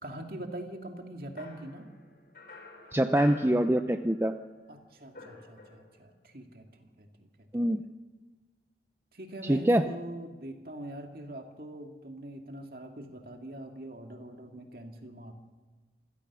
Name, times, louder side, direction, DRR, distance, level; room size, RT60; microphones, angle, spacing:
voice 1, 0.0-1.9 4.7-7.3 9.1-15.3, right 1 dB, 55° right, 3 dB, 2.5 m, -43 dB
sound 1, 1.4-4.4 4.7-6.1, left 3 dB, 55° left, 5.0 m, -49 dB
voice 2, 2.9-4.3 7.5-7.8 9.4-9.8, right 1 dB, 15° right, 8 dB, 0.6 m, -24 dB
26.5 x 17.0 x 6.3 m, 1.3 s
head